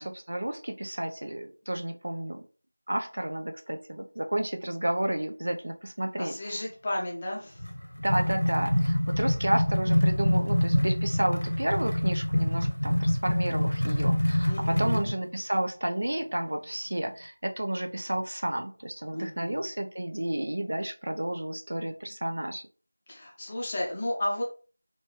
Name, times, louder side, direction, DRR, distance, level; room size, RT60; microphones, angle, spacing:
voice 1, 0.0-2.4 2.9-6.7 8.0-22.6, right 1 dB, 55° right, 5 dB, 0.5 m, -31 dB
voice 2, 6.2-7.6 14.5-15.1 19.1-19.6 23.1-24.4, left 1 dB, 15° left, -3 dB, 0.6 m, -33 dB
sound 1, 7.6-15.1, left 1 dB, 85° left, 1.0 m, -26 dB
4.0 x 2.3 x 3.0 m, 0.38 s
figure-of-eight pair, 175°, 0 cm